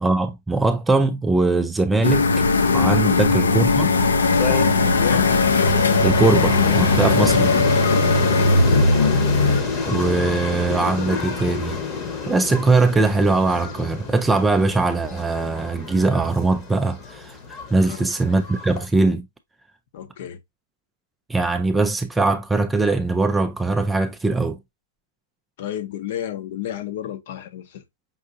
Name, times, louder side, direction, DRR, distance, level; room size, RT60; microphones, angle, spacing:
voice 1, 0.0-2.4 2.7-3.9 6.0-7.5 9.9-11.8 12.3-17.4 17.7-19.3 21.3-24.6, right 3 dB, 5° right, 0.3 m, -21 dB
sound 1, 2.0-9.6, left 3 dB, 85° left, 0.7 m, -18 dB
sound 2, 4.2-18.9, left 5 dB, 25° left, 0.9 m, -29 dB
voice 2, 4.8-5.3 7.0-7.5 8.3-8.7 17.7-18.1 19.9-20.4 25.6-27.8, left 10 dB, 45° left, 0.7 m, -31 dB
5.4 x 2.6 x 2.5 m
hypercardioid pair, 145°, 0 cm